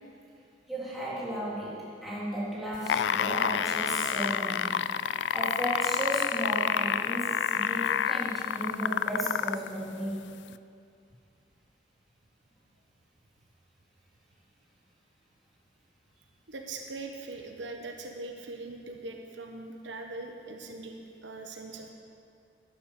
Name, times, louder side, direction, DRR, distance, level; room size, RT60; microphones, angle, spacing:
voice 1, 0.7-4.8 5.3-10.3, equal, ahead, -9 dB, 3.7 m, -34 dB
sound 1, 2.7-9.7 10.5-10.6, left 8 dB, 70° left, 0.4 m, -28 dB
voice 2, 16.5-21.9, right 3 dB, 80° right, 3 dB, 1.3 m, -41 dB
12.0 x 11.0 x 6.8 m, 2.3 s
head